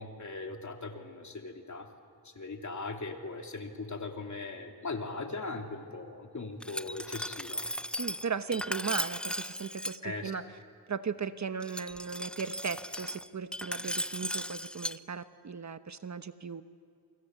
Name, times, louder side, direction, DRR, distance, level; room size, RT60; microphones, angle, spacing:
voice 1, 0.0-1.9 2.2-7.6 10.0-10.3, left 3 dB, 50° left, 3 dB, 3.2 m, -39 dB
Glass, 6.6-10.0 11.6-15.0, equal, 5° left, 0.6 m, -37 dB
voice 2, 8.0-10.4 10.9-16.6, right 6 dB, 45° right, 10 dB, 1.1 m, -37 dB
28.5 x 26.0 x 8.2 m, 2.4 s
wide cardioid pair, 85°, 38 cm